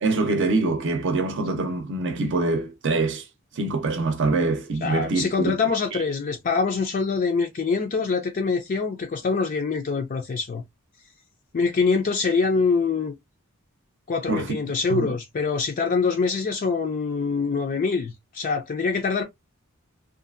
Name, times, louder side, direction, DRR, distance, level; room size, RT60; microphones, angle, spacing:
voice 1, 0.0-3.2 3.5-5.6 5.9-6.0 14.3-14.5 14.9-15.2, right 3 dB, 60° right, 0.6 m, -24 dB
voice 2, 4.8-10.6 11.5-13.1 14.1-19.2, left 4 dB, 40° left, 0.4 m, -24 dB
2.6 x 2.4 x 2.4 m
head